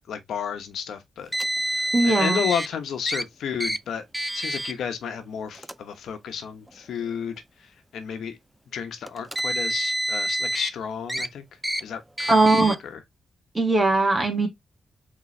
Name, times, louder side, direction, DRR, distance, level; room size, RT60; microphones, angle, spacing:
voice 1, 0.1-1.3 1.7-4.0 4.3-7.4 7.9-8.4 8.7-11.4 11.8-13.0, left 7 dB, 85° left, 1.0 m, -32 dB
Car, 1.3-2.7 3.1-3.2 3.6-3.8 4.1-4.7 5.5-5.7 6.7-6.8 9.1-10.7 11.1-11.3 11.6-11.8 12.2-12.8, right 1 dB, 5° right, 0.4 m, -27 dB
voice 2, 1.9-2.4 12.3-12.8 13.6-14.5, right 2 dB, 25° right, 1.8 m, -20 dB
3.8 x 3.7 x 3.2 m
cardioid pair, 75°, 0 cm